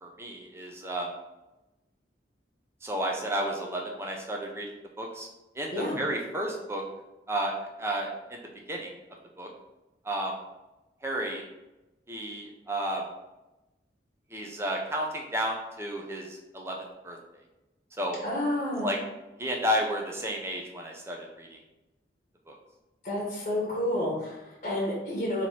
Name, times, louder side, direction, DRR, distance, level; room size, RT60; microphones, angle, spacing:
voice 1, 0.0-1.1 2.8-5.3 5.5-6.8 7.3-7.5 7.8-8.4 8.7-8.9 9.4-9.5 10.0-10.3 11.0-11.4 12.1-13.0 14.3-16.8 17.0-17.2 18.0-18.2 18.8-19.0 19.4-21.6 22.5-22.6, equal, 15° right, 0 dB, 0.5 m, -32 dB
voice 2, 18.2-18.9 23.0-25.5, left 1 dB, 40° left, -4 dB, 0.9 m, -30 dB
3.1 x 2.9 x 4.1 m, 1.0 s
head